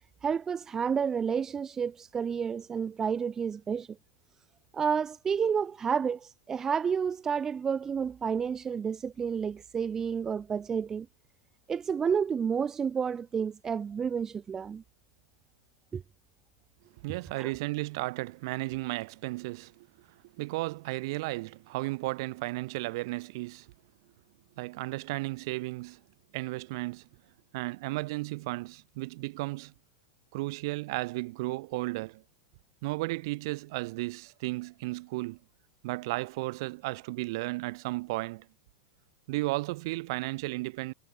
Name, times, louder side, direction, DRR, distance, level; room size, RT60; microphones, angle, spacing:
voice 1, 0.2-3.9 4.7-11.1 11.7-14.8 15.9-16.0 17.4-17.5, right 6 dB, 20° right, 0.6 m, -30 dB
voice 2, 17.0-23.7 24.6-26.0 26.3-27.1 27.5-29.7 30.3-32.2 32.8-35.4 35.8-38.5 39.3-40.9, right 22 dB, 60° right, 0.5 m, -34 dB
supercardioid pair, 140°, 3 cm